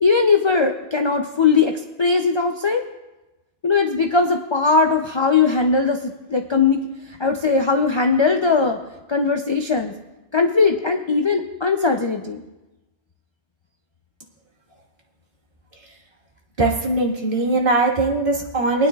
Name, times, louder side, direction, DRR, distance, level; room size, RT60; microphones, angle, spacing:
voice 1, 0.0-2.8 3.6-6.9 7.2-8.8 9.1-9.9 10.3-12.4, left 4 dB, 40° left, 4 dB, 0.4 m, -19 dB
voice 2, 16.6-18.9, right 2 dB, 50° right, -1 dB, 1.7 m, -20 dB
23.0 x 9.7 x 2.4 m, 1.0 s
omnidirectional pair, 1.2 m